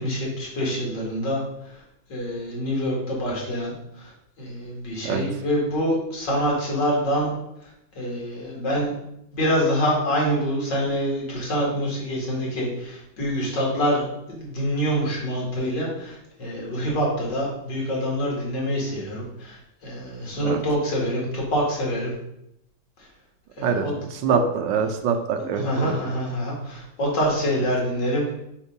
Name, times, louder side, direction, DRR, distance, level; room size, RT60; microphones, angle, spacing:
voice 1, 0.0-1.4 1.7-1.8 2.1-4.1 4.4-7.3 7.9-8.9 9.3-22.1 23.6-23.9 24.3-24.4 25.4-28.3, equal, 60° left, -3 dB, 2.7 m, -26 dB
voice 2, 23.6-25.9, right 7 dB, 70° right, 6 dB, 1.3 m, -24 dB
7.2 x 3.7 x 5.2 m, 0.82 s
omnidirectional pair, 2.2 m